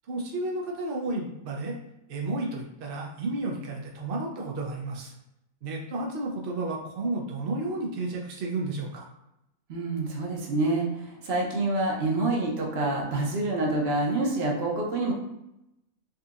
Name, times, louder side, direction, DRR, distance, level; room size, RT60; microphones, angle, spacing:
voice 1, 0.1-1.8 2.1-5.1 5.6-9.0, right 2 dB, 90° right, -1 dB, 0.5 m, -32 dB
voice 2, 9.7-15.1, right 2 dB, 55° right, -1 dB, 0.7 m, -27 dB
3.9 x 2.7 x 2.4 m, 0.86 s
omnidirectional pair, 1.7 m